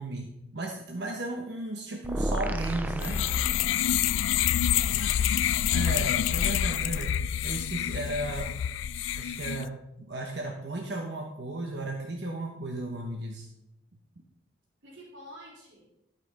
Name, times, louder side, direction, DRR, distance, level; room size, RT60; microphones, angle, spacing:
voice 1, 0.0-3.2 5.7-8.5 9.1-13.5, right 2 dB, 65° right, 2 dB, 1.0 m, -35 dB
sound 1, 2.0-4.2, right 1 dB, 10° right, 0.4 m, -32 dB
sound 2, 3.0-9.7, left 10 dB, 90° left, 0.3 m, -27 dB
voice 2, 3.9-6.0 14.8-15.9, right 1 dB, 80° right, -4 dB, 3.3 m, -50 dB
12.5 x 5.7 x 4.1 m, 0.85 s
head